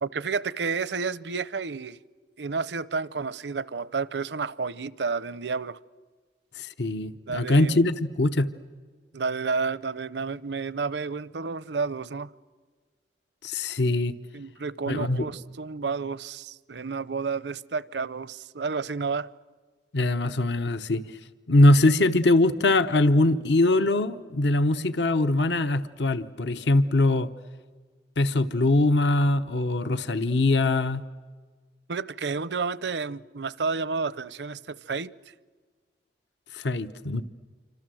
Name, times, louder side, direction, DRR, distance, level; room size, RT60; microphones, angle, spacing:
voice 1, 0.0-2.0 2.4-5.8 7.3-7.8 9.1-12.3 14.3-19.3 31.9-35.1, right 4 dB, 70° right, 0.7 m, -31 dB
voice 2, 6.6-8.5 13.4-14.1 14.9-15.3 19.9-21.0 21.5-27.3 28.2-31.0 36.5-37.2, left 2 dB, 70° left, 0.9 m, -22 dB
27.5 x 25.5 x 7.7 m
head